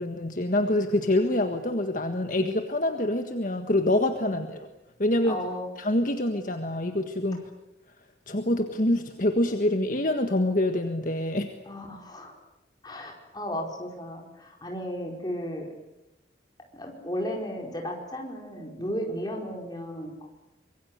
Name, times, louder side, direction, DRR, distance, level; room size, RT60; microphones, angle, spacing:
voice 1, 0.0-4.6 5.0-5.4 5.8-7.5 8.3-11.5, left 1 dB, 45° left, 5 dB, 1.6 m, -26 dB
voice 2, 5.2-5.7 8.3-8.4 11.7-12.4 12.8-15.7 16.7-20.3, equal, 20° left, 1 dB, 4.7 m, -34 dB
25.5 x 22.5 x 8.2 m, 0.96 s
head